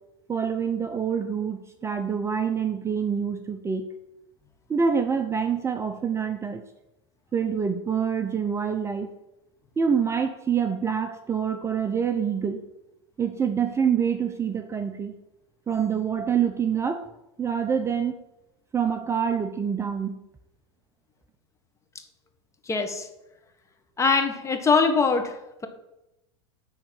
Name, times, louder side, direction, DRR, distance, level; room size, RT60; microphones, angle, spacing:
voice 1, 0.3-3.9 4.7-6.6 7.3-9.1 9.8-12.6 13.2-15.1 15.7-17.1 17.4-18.2 18.7-20.2, right 7 dB, 20° right, 7 dB, 0.7 m, -26 dB
voice 2, 22.6-23.1 24.0-25.4, left 4 dB, 20° left, 6 dB, 1.4 m, -22 dB
10.0 x 3.9 x 7.5 m, 0.92 s
hypercardioid pair, 105°, 15 cm